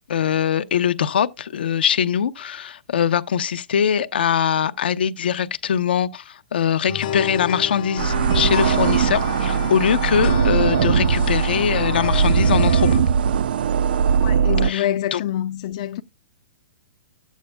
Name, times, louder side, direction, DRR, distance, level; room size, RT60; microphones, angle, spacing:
voice 1, 0.1-12.9 14.6-14.8 15.1-15.2, left 8 dB, 75° left, 0.7 m, -22 dB
sound 1, 6.9-13.0, left 9 dB, 55° left, 1.3 m, -30 dB
sound 2, 8.0-14.7, right 7 dB, 70° right, 0.4 m, -20 dB
voice 2, 14.2-16.0, left 12 dB, 40° left, 0.4 m, -26 dB
11.5 x 8.3 x 2.2 m
hypercardioid pair, 165°, 5 cm